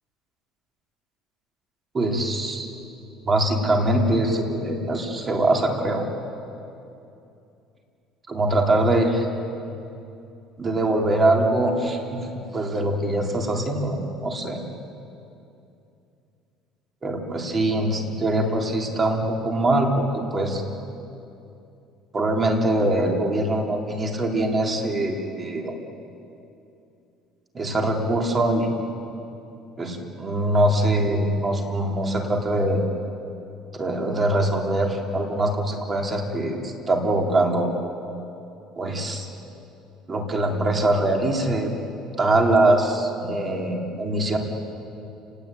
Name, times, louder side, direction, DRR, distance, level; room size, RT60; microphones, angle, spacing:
voice 1, 1.9-2.7 3.3-6.0 8.3-9.3 10.6-12.3 12.5-14.6 17.0-20.6 22.1-25.7 27.5-28.7 29.8-32.8 33.7-37.7 38.8-39.3 40.1-41.7 42.2-44.4, right 1 dB, 25° right, 1 dB, 3.6 m, -23 dB
29.5 x 19.5 x 9.1 m, 2.7 s
cardioid pair, 135°, 0 cm